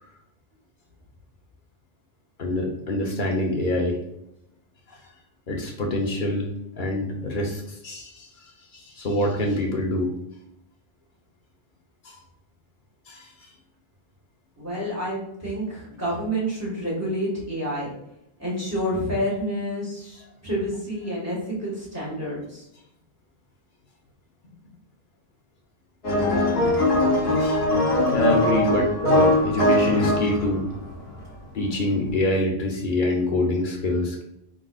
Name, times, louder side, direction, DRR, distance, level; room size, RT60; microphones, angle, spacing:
voice 1, 2.4-4.0 5.5-6.5 6.8-8.3 8.7-10.2 12.0-12.2 13.1-13.3 27.4-27.6 28.1-30.6 31.5-34.2, left 1 dB, 55° left, 1 dB, 1.0 m, -25 dB
voice 2, 14.6-17.9 18.4-22.6, equal, 15° right, -7 dB, 1.7 m, -29 dB
sound 1, 26.0-31.5 32.1-32.2, left 1 dB, 75° left, 1.3 m, -21 dB
5.2 x 3.8 x 2.4 m, 0.81 s
omnidirectional pair, 1.1 m